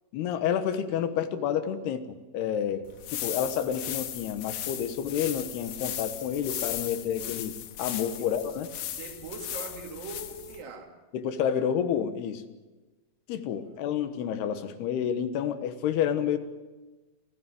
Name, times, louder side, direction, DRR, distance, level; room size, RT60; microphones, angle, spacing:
voice 1, 0.1-2.8 3.1-8.7 11.1-12.4 13.3-16.4, left 8 dB, 85° left, 10 dB, 3.3 m, -29 dB
sound 1, 2.9-10.6, left 11 dB, 65° left, 2.5 m, -37 dB
voice 2, 8.9-11.0 13.6-13.7, right 4 dB, 65° right, 2 dB, 4.2 m, -41 dB
27.0 x 15.0 x 7.7 m, 1.2 s
omnidirectional pair, 4.6 m